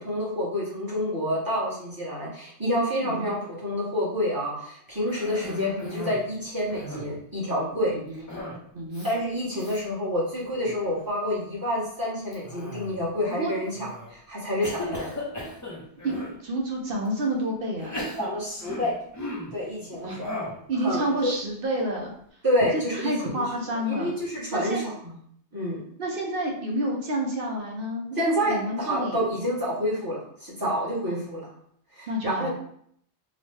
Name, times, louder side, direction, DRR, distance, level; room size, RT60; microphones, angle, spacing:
voice 1, 0.0-7.9 9.0-15.2 18.2-19.0 19.5-20.4 20.8-21.3 22.4-23.4 23.9-25.1 25.5-25.8 28.2-31.5 31.9-32.5, equal, 20° right, -7 dB, 0.9 m, -28 dB
voice 2, 3.0-3.3 5.4-5.7 8.1-8.2 8.7-9.1 13.3-13.5 16.0-16.1 16.4-18.0 20.0-20.2 20.7-22.1 22.7-24.1 24.5-24.8 26.0-29.2 31.1-31.2 32.1-32.5, right 1 dB, 60° right, 0 dB, 0.7 m, -29 dB
Cough, 5.1-6.3 6.6-7.2 8.3-8.6 8.9-9.1 9.6-9.8 10.4-10.8 12.3-13.1 13.7-14.1 14.6-16.4 17.0-17.1 17.8-19.6 20.2-20.6, left 1 dB, 25° left, 0.5 m, -37 dB
2.9 x 2.1 x 3.2 m, 0.66 s
omnidirectional pair, 1.2 m